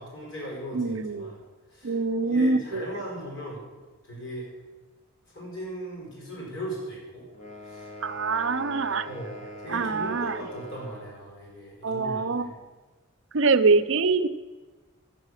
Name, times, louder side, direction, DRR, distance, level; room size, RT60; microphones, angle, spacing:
voice 1, 0.0-1.4 1.7-3.6 4.0-4.5 5.3-7.3 7.6-8.2 9.0-12.5, equal, 50° left, -4 dB, 4.6 m, -38 dB
voice 2, 0.7-1.3 1.8-2.9 8.0-9.1 9.7-10.4 11.8-12.5 13.3-14.3, right 4 dB, 55° right, 10 dB, 0.6 m, -24 dB
sound 1, 7.3-11.2, equal, 30° left, 1.0 m, -42 dB
13.0 x 8.5 x 6.5 m, 1.3 s
head